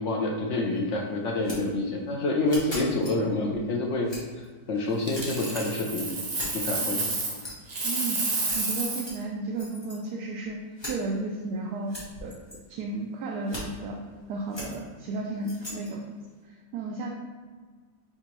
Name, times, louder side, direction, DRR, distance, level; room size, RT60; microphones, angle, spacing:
voice 1, 0.0-4.1 4.7-6.1 6.5-7.1, left 2 dB, 65° left, 0 dB, 0.7 m, -27 dB
sound 1, 0.8-0.9 1.4-1.6 2.4-3.1 4.0-4.5 5.1-5.4 6.3-6.7 7.2-7.7 8.4-9.1 9.5-10.0 10.8-10.9 11.9-12.5 13.4-13.6 14.5-14.7 15.4-15.9, left 1 dB, 20° left, 0.9 m, -39 dB
Coin (dropping), 5.0-7.4 7.7-9.1 12.0-12.2, right 3 dB, 50° right, 0.5 m, -30 dB
voice 2, 7.8-8.2 8.5-10.6 10.9-11.9 12.2-14.0 14.3-16.0 16.5-17.1, right 3 dB, 75° right, -1 dB, 1.1 m, -33 dB
4.4 x 4.0 x 3.0 m, 1.5 s
omnidirectional pair, 1.8 m